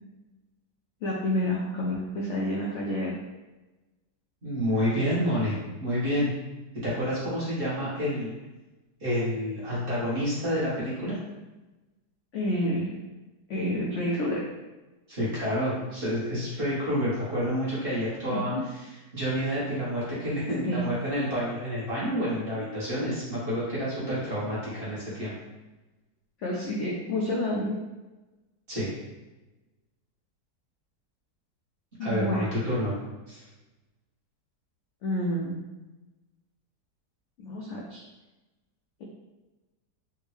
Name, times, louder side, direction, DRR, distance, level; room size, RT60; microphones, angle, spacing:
voice 1, 1.0-3.1 12.3-12.9 13.5-14.4 18.3-18.6 20.6-20.8 26.4-27.8 32.0-32.5 35.0-35.6 37.4-38.0, left 1 dB, 80° left, -3 dB, 0.6 m, -29 dB
voice 2, 4.4-6.3 6.8-8.3 9.0-11.2 15.1-25.3 28.7-28.9 32.0-32.9 33.3-33.4, equal, 40° right, -9 dB, 1.0 m, -29 dB
3.5 x 2.2 x 3.2 m, 1.1 s
omnidirectional pair, 1.8 m